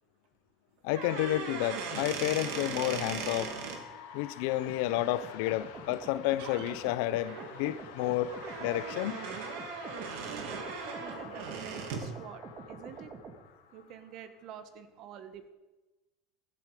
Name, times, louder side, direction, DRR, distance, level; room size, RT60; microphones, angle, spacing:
voice 1, 0.8-3.5 4.1-8.3 8.6-9.2, left 15 dB, 75° left, 16 dB, 0.7 m, -30 dB
sound 1, 0.9-3.8 5.9-6.1 6.4-6.7 7.2-12.1, right 5 dB, 75° right, 2.5 m, -39 dB
sound 2, 1.0-14.7, left 8 dB, 90° left, 1.8 m, -50 dB
sound 3, 4.7-13.4, right 4 dB, 35° right, 2.1 m, -47 dB
voice 2, 10.2-10.7 11.0-13.1 13.7-15.5, right 8 dB, 50° right, 10 dB, 1.6 m, -48 dB
15.5 x 14.5 x 5.0 m, 1.1 s
supercardioid pair, 125°, 0 cm